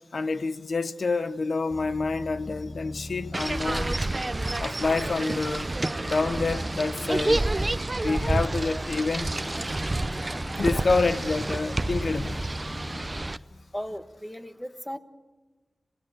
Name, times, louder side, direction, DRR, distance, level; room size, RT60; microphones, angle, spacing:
voice 1, 0.1-4.0 4.6-5.7 6.1-7.4 8.0-9.3 10.6-12.4, left 3 dB, 75° left, 0.9 m, -27 dB
sound 1, 1.7-14.2, left 1 dB, 40° left, 0.9 m, -41 dB
sound 2, 3.3-13.4, right 2 dB, 30° right, 0.6 m, -29 dB
voice 2, 13.7-15.0, equal, 10° left, 1.4 m, -36 dB
27.0 x 17.5 x 7.8 m
wide cardioid pair, 60°, 0 cm